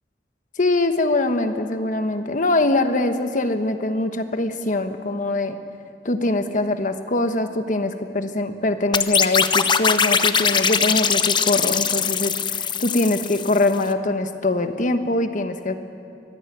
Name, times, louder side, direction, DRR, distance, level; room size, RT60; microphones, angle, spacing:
voice 1, 0.6-5.6 6.0-15.7, left 2 dB, 45° left, 8 dB, 1.2 m, -23 dB
sound 1, 8.9-13.7, left 6 dB, 25° left, 0.7 m, -21 dB
23.5 x 15.5 x 9.7 m, 2.5 s
head